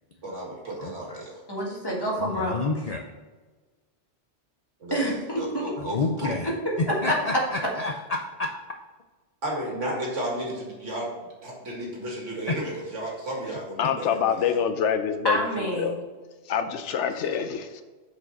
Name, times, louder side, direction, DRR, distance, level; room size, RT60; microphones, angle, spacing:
voice 1, 0.2-1.4 4.8-6.3 9.4-11.1 11.4-14.6, right 1 dB, 90° right, -2 dB, 2.2 m, -33 dB
voice 2, 0.8-1.2 2.2-3.0 5.8-6.5 7.0-8.5 12.5-12.6, left 3 dB, 50° left, 3 dB, 0.5 m, -30 dB
voice 3, 1.5-2.6 4.9-5.6 6.4-6.5 6.9-7.1 15.2-15.9, equal, 20° left, -4 dB, 1.7 m, -27 dB
voice 4, 13.8-15.4 15.8-16.0 16.5-17.8, left 7 dB, 80° left, 8 dB, 0.9 m, -26 dB
6.2 x 5.0 x 4.1 m, 1.3 s
omnidirectional pair, 1.2 m